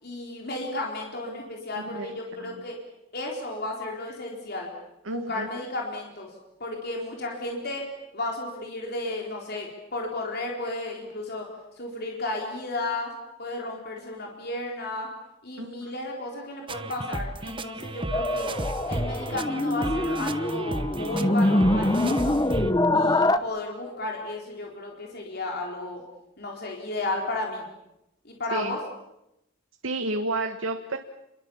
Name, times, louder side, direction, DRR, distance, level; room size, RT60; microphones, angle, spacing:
voice 1, 0.0-2.8 3.1-4.7 5.1-6.3 6.6-7.9 8.1-11.5 11.8-13.1 13.4-15.1 15.4-18.5 18.9-22.4 22.9-26.0 26.4-27.6 28.2-28.8, left 2 dB, 50° left, 0 dB, 4.2 m, -33 dB
voice 2, 1.7-2.1 2.4-2.6 5.0-5.5 15.6-15.9 22.9-23.3 28.5-28.8 29.8-31.0, right 2 dB, 80° right, 6 dB, 1.6 m, -32 dB
sound 1, 16.7-22.7, right 2 dB, 25° right, 1.0 m, -34 dB
sound 2, 18.1-23.4, left 1 dB, 20° left, 0.9 m, -24 dB
30.0 x 22.5 x 7.3 m, 0.89 s
head